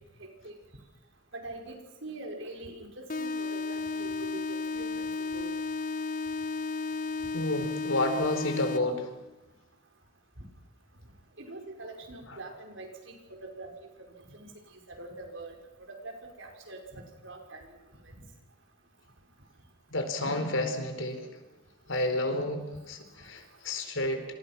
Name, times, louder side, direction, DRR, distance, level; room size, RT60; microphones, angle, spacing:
voice 1, 0.2-0.5 1.3-5.0 5.3-5.5 7.6-7.7 10.4-10.5 11.4-13.7 14.3-14.5 14.9-15.5 15.9-17.7 18.1-18.2, right 2 dB, 65° right, 3 dB, 5.6 m, -43 dB
sound 1, 3.1-9.1, left 3 dB, 40° left, 1.1 m, -33 dB
voice 2, 7.3-9.1 12.3-12.4 19.9-21.4 21.9-24.3, left 1 dB, 70° left, 7 dB, 4.4 m, -30 dB
27.5 x 27.5 x 6.1 m, 0.98 s
head